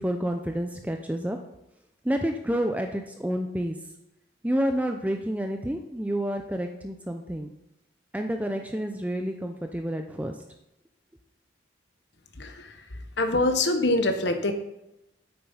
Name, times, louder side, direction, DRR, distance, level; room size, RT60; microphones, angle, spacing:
voice 1, 0.0-1.4 2.0-3.8 4.4-7.5 8.1-10.4, equal, 10° right, 4 dB, 0.6 m, -29 dB
voice 2, 12.4-12.7 13.2-14.5, left 2 dB, 70° left, 6 dB, 1.2 m, -24 dB
8.8 x 7.5 x 5.6 m, 0.90 s
head